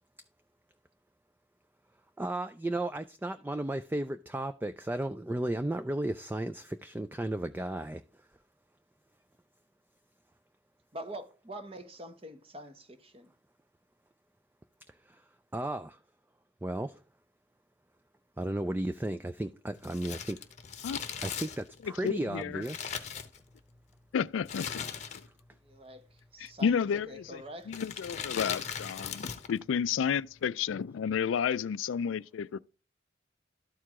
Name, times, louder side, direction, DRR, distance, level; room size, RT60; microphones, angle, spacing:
voice 1, 2.2-8.0 15.1-15.2 15.5-16.0 16.6-17.0 18.4-20.4 21.2-23.0, right 1 dB, 10° right, 0.3 m, -34 dB
voice 2, 10.9-13.3 25.6-26.1 26.3-26.8 27.1-27.7, right 1 dB, 30° right, 0.9 m, -45 dB
Crumpling crinkling, 19.8-23.8 24.4-25.5 25.7-25.8 26.6-27.0 27.7-29.6 29.8-29.9, left 7 dB, 35° left, 0.8 m, -39 dB
voice 3, 22.0-22.6 24.1-24.9 26.4-32.6, left 7 dB, 90° left, 0.3 m, -31 dB
12.5 x 4.7 x 3.6 m
head